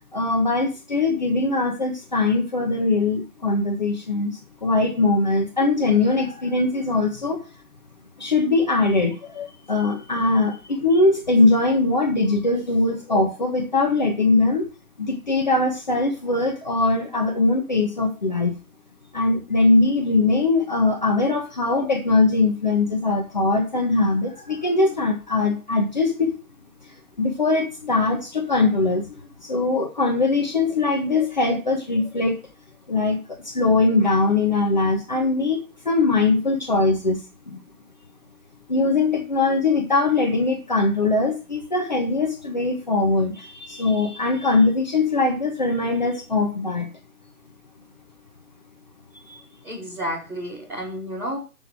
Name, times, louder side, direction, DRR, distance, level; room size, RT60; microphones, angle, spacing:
voice 1, 0.1-7.4 8.2-14.7 15.0-18.6 19.1-26.3 27.2-32.4 32.9-37.6 38.7-46.9 49.1-49.4, left 3 dB, 30° left, 0 dB, 1.1 m, -21 dB
voice 2, 49.6-51.4, equal, 5° right, -7 dB, 1.9 m, -31 dB
6.9 x 6.4 x 7.2 m, 0.33 s
figure-of-eight pair, 150°, 45 cm